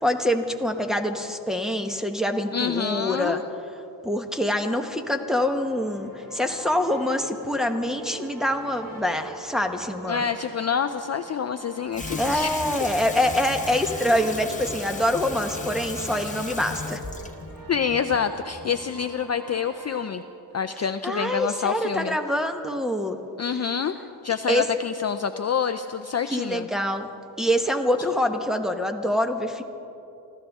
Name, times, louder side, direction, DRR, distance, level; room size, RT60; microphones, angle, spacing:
voice 1, 0.0-3.4 4.0-10.2 12.2-17.0 21.0-23.2 24.5-24.7 26.3-27.1 27.4-29.6, left 1 dB, ahead, 3 dB, 1.1 m, -25 dB
voice 2, 2.5-3.4 10.1-12.6 17.7-20.2 20.5-22.2 23.4-24.0 24.2-26.7, left 7 dB, 40° left, 9 dB, 0.5 m, -27 dB
sound 1, 5.3-20.1, right 3 dB, 50° right, 3.1 m, -43 dB
Water tap faucet / Sink (filling or washing), 11.9-19.0, left 3 dB, 15° left, 1.2 m, -36 dB
26.5 x 14.5 x 3.6 m, 2.8 s
wide cardioid pair, 105°, 43 cm